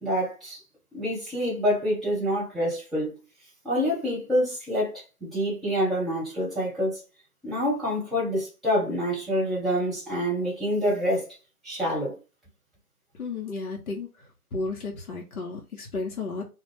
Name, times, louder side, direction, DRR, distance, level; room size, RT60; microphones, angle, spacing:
voice 1, 0.0-0.6 0.9-3.2 3.6-7.0 7.4-11.3 11.6-12.2, equal, ahead, 0.5 m, -27 dB
voice 2, 13.2-16.4, left 3 dB, 70° left, 0.9 m, -33 dB
2.3 x 2.1 x 3.1 m
hypercardioid pair, 175°, 45 cm